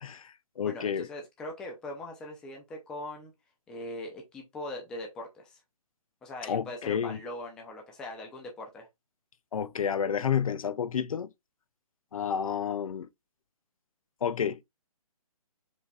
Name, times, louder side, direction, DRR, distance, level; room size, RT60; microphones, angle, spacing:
voice 1, 0.0-1.1 6.4-7.2 9.5-11.3 12.1-13.1 14.2-14.6, left 8 dB, 65° left, 0.4 m, -30 dB
voice 2, 0.6-3.3 3.7-5.6 6.2-8.9, left 1 dB, 5° left, 0.4 m, -41 dB
4.8 x 3.3 x 2.2 m
figure-of-eight pair, 145°, 19 cm